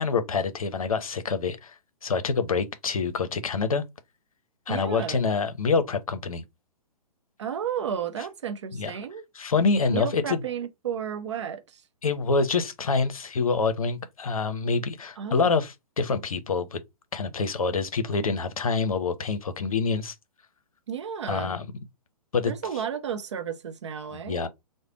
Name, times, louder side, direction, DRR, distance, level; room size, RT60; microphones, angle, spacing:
voice 1, 0.0-1.7 2.0-3.8 4.7-6.4 8.7-8.9 9.4-10.4 12.0-16.8 17.1-20.1 21.3-21.7 22.3-22.5 24.1-24.5, left 4 dB, 65° left, 0.7 m, -26 dB
voice 2, 4.7-5.2 7.4-9.2 9.9-11.8 15.2-15.5 20.9-21.6 22.5-24.5, right 8 dB, 50° right, 0.6 m, -33 dB
3.2 x 2.1 x 3.6 m
figure-of-eight pair, 125°, 20 cm